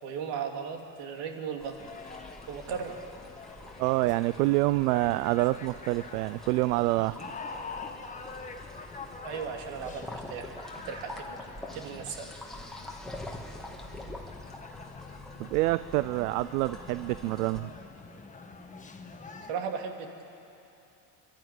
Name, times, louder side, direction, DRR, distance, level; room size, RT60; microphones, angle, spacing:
voice 1, 0.0-1.8 2.5-3.0 9.2-10.5 10.8-11.4 11.7-12.3 19.5-20.2, right 6 dB, 70° right, 4 dB, 2.5 m, -36 dB
sound 1, 1.6-17.6, left 1 dB, ahead, 2.1 m, -46 dB
sound 2, 1.8-19.5, left 4 dB, 15° left, 1.5 m, -46 dB
voice 2, 3.8-7.2 15.4-17.7, right 19 dB, 85° right, 16 dB, 0.5 m, -27 dB
24.5 x 12.0 x 9.3 m, 2.9 s
supercardioid pair, 100°, 44 cm